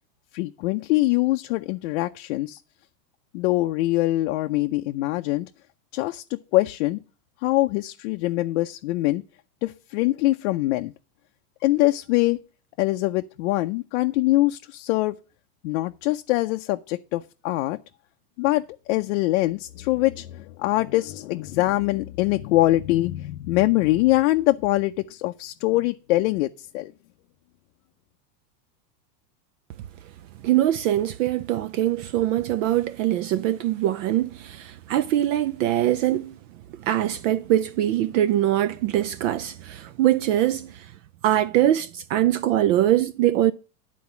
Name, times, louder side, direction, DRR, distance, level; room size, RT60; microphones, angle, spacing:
voice 1, 0.3-2.6 3.3-5.5 5.9-7.0 7.4-9.2 9.6-10.9 11.6-12.4 12.8-15.1 15.6-17.8 18.4-26.9, left 18 dB, 50° left, 0.5 m, -23 dB
voice 2, 30.4-36.3 36.8-40.9 41.2-43.5, right 13 dB, 55° right, 0.5 m, -22 dB
10.5 x 4.2 x 6.9 m
supercardioid pair, 145°, 48 cm